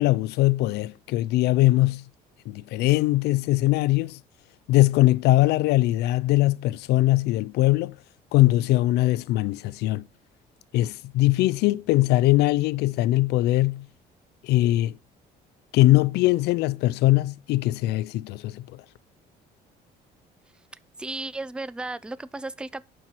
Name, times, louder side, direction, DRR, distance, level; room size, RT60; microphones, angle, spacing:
voice 1, 0.0-2.0 2.5-4.2 4.7-8.0 8.3-10.1 10.7-13.9 14.4-15.0 15.7-18.8, left 17 dB, 80° left, 0.4 m, -21 dB
voice 2, 21.0-22.8, right 2 dB, 5° right, 0.4 m, -34 dB
11.0 x 4.5 x 4.6 m
cardioid pair, 110°, 17 cm